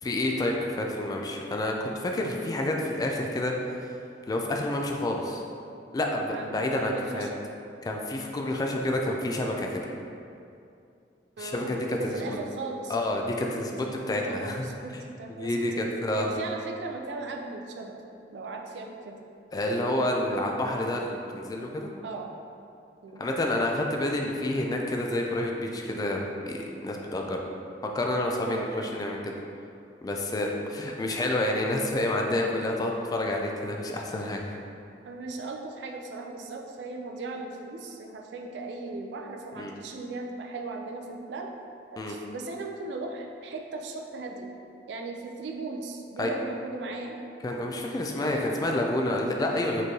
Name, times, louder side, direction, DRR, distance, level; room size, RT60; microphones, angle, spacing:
voice 1, 0.0-3.7 4.3-5.4 5.9-7.3 7.8-9.9 11.4-12.4 12.9-14.7 14.9-15.0 15.4-16.3 19.5-21.9 23.2-27.4 27.8-29.3 30.0-34.6 39.5-39.8 42.0-42.2 46.2-46.3 47.4-49.9, left 1 dB, 20° left, 1 dB, 0.3 m, -29 dB
voice 2, 6.3-7.4 11.4-13.0 13.7-15.8 16.2-18.0 18.3-19.2 22.0-22.3 23.0-23.2 28.5-29.1 35.0-41.5 41.9-44.5 44.9-47.2 48.2-48.7, right 3 dB, 70° right, 2 dB, 0.4 m, -38 dB
4.2 x 3.1 x 2.7 m, 2.5 s
head